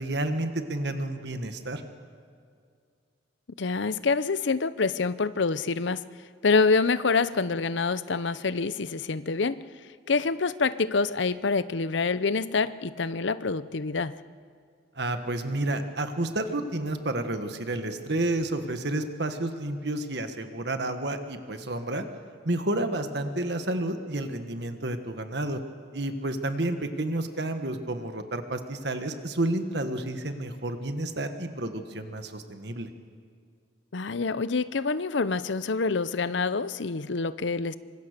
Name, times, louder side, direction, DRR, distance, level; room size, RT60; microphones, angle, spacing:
voice 1, 0.0-1.8 15.0-22.0 22.4-25.6 25.9-32.9, right 1 dB, 60° right, 7 dB, 1.6 m, -30 dB
voice 2, 3.6-6.0 6.4-9.6 10.1-14.2 33.9-37.7, left 4 dB, 70° left, 15 dB, 0.7 m, -26 dB
25.0 x 24.0 x 6.8 m, 2.2 s
head